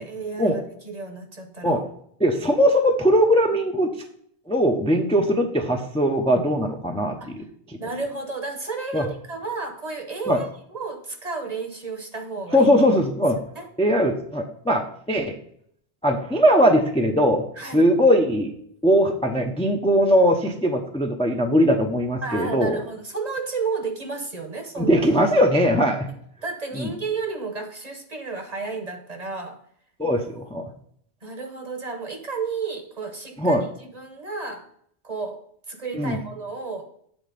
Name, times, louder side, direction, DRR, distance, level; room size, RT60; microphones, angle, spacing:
voice 1, 0.0-1.8 7.2-7.3 7.8-12.7 13.5-13.7 17.6-17.9 22.2-25.0 26.4-29.6 31.2-33.6 33.9-34.7 35.0-36.9, right 4 dB, 40° right, 5 dB, 1.0 m, -32 dB
voice 2, 2.2-3.9 4.5-7.5 7.7-7.8 8.9-9.1 10.3-10.4 12.5-13.4 13.8-15.4 16.0-17.4 17.7-18.5 18.8-22.8 24.8-26.1 26.7-26.9 30.0-30.7 33.4-33.6 35.9-36.2, equal, 5° left, 3 dB, 0.6 m, -20 dB
8.1 x 4.2 x 5.1 m, 0.66 s
omnidirectional pair, 1.2 m